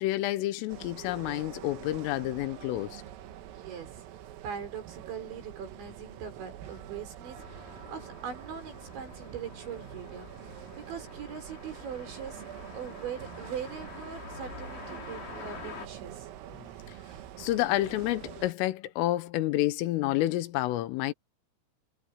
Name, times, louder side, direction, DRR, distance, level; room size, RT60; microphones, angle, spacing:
voice 1, 0.0-3.0 16.5-16.7 17.4-21.1, left 16 dB, 85° left, 3.6 m, -29 dB
sound 1, 0.7-18.5, right 11 dB, 85° right, 4.3 m, -46 dB
voice 2, 3.5-4.0 4.4-12.4 12.7-16.3, right 7 dB, 65° right, 7.3 m, -41 dB
sound 2, 7.3-15.9, left 6 dB, 45° left, 5.0 m, -47 dB
omnidirectional pair, 5.8 m